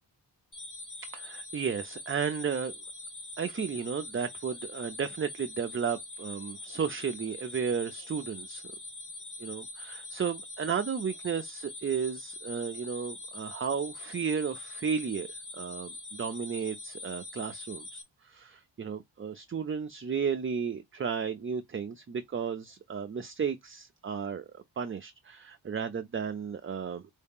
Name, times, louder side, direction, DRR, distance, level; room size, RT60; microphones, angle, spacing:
sound 1, 0.5-18.0, left 2 dB, 45° left, 1.7 m, -43 dB
voice 1, 1.0-2.7 3.4-8.6 9.4-15.3 15.5-27.0, right 6 dB, 30° right, 0.4 m, -33 dB
4.7 x 2.8 x 3.5 m
wide cardioid pair, 95°, 45 cm